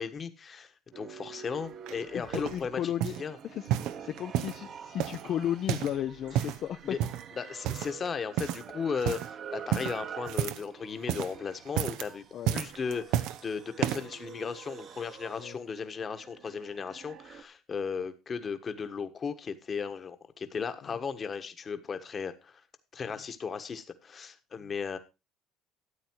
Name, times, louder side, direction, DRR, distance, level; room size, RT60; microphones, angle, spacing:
voice 1, 0.0-2.9 3.2-3.4 6.8-7.0 7.4-12.2 12.5-22.6 22.9-25.0, left 6 dB, 30° left, 9 dB, 1.4 m, -36 dB
sound 1, 0.9-17.4, right 7 dB, 40° right, 1.3 m, -47 dB
sound 2, 1.9-2.6 3.0-3.3 3.7-4.6 5.0-6.0 6.2-6.6 7.0-7.3 7.6-8.1 8.4-8.7 9.0-9.3 9.7-10.7 11.0-11.4 11.7-12.1 12.5-13.4 13.8-14.2 14.8-14.9, right 11 dB, 75° right, 0.9 m, -31 dB
voice 2, 2.1-3.2 3.4-7.0 12.3-12.6 15.4-15.6, left 10 dB, 50° left, 6 dB, 0.7 m, -34 dB
13.5 x 8.6 x 4.6 m, 0.28 s
cardioid pair, 135°, 0 cm